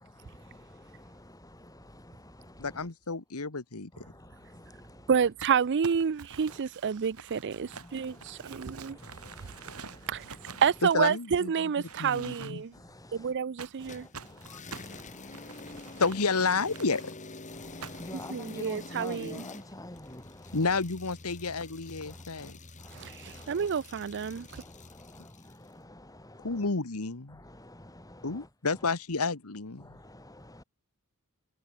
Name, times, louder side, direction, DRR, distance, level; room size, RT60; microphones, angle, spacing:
voice 1, 0.2-2.9 3.9-5.2 6.5-6.6 7.4-10.8 12.2-12.3 12.7-13.4 13.8-16.2 17.5-20.8 22.0-23.7 24.3-26.7 27.3-28.9 29.8-30.6, left 1 dB, 15° left, 5.1 m, -49 dB
voice 2, 2.6-3.9 10.9-11.5 12.0-12.6 16.0-17.1 20.5-22.6 26.4-27.4 28.2-29.8, left 4 dB, 75° left, 1.5 m, -30 dB
voice 3, 5.1-9.0 10.1-10.2 10.6-12.7 13.1-14.1 18.3-19.4 22.9-24.6, right 7 dB, 55° right, 0.5 m, -29 dB
Crumpling crinkling, 5.4-11.4 11.8-12.8 13.6-17.1 17.8-18.2, right 5 dB, 80° right, 7.7 m, -47 dB
sound 1, 13.9-25.7, left 2 dB, 35° left, 2.7 m, -47 dB
head